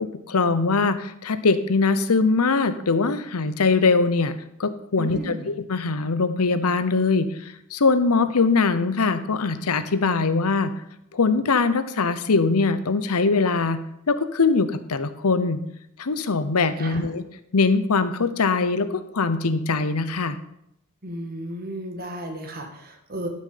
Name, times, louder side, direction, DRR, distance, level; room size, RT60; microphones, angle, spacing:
voice 1, 0.0-10.7 11.1-13.8 14.1-15.6 16.0-17.2 17.5-20.4, left 4 dB, 85° left, 12 dB, 0.8 m, -22 dB
voice 2, 5.0-5.5 16.8-17.1 21.0-23.3, right 1 dB, 45° right, 4 dB, 1.7 m, -34 dB
12.0 x 6.4 x 5.8 m, 0.79 s
head